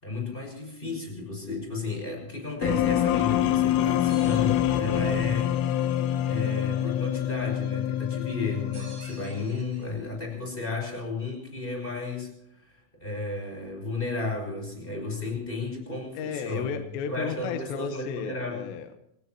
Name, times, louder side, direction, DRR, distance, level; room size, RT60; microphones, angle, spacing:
voice 1, 0.0-5.5 6.3-16.7 17.1-18.6, left 3 dB, 10° left, 1 dB, 5.3 m, -33 dB
sound 1, 2.6-9.6, left 11 dB, 90° left, 3.5 m, -26 dB
sound 2, 4.1-5.4 8.7-10.3, right 3 dB, 30° right, 4.7 m, -50 dB
voice 2, 16.1-19.0, left 7 dB, 75° left, 7 dB, 3.1 m, -33 dB
25.5 x 18.0 x 3.0 m, 0.75 s
omnidirectional pair, 5.7 m